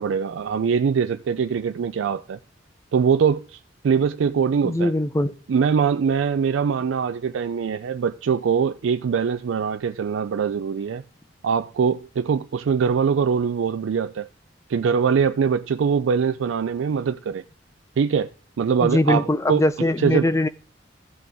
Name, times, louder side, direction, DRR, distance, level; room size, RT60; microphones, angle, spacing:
voice 1, 0.0-2.4 2.9-4.9 5.5-11.0 11.4-14.3 14.7-17.4 18.0-18.3 18.6-19.7 20.0-20.3, right 6 dB, 80° right, 0.4 m, -22 dB
voice 2, 4.6-5.3 18.8-20.5, left 1 dB, 15° left, 0.5 m, -21 dB
15.0 x 6.1 x 3.4 m
head